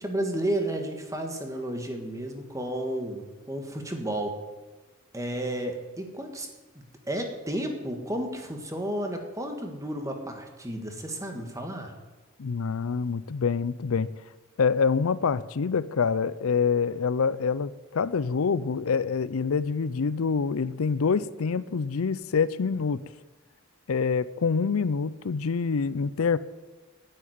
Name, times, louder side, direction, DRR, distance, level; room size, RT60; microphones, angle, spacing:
voice 1, 0.0-4.4 5.1-6.5 7.1-11.9, right 1 dB, 15° right, 4 dB, 1.7 m, -32 dB
voice 2, 12.4-14.1 14.6-23.0 23.9-26.4, left 5 dB, 80° left, 17 dB, 0.5 m, -26 dB
9.5 x 9.4 x 9.5 m, 1.2 s
head